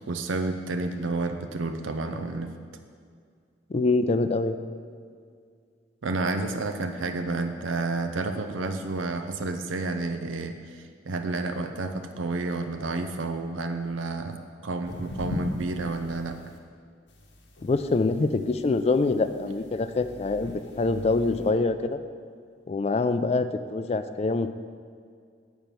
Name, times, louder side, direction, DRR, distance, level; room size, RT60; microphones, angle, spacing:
voice 1, 0.1-2.5 6.0-16.4, right 3 dB, 85° right, 7 dB, 0.5 m, -30 dB
voice 2, 3.7-4.6 17.6-20.5 20.8-22.0 22.7-24.5, left 3 dB, 30° left, 10 dB, 0.3 m, -25 dB
sound 1, 14.8-16.6 17.1-21.5, left 1 dB, 65° left, 0.9 m, -40 dB
8.9 x 4.4 x 6.8 m, 2.1 s
head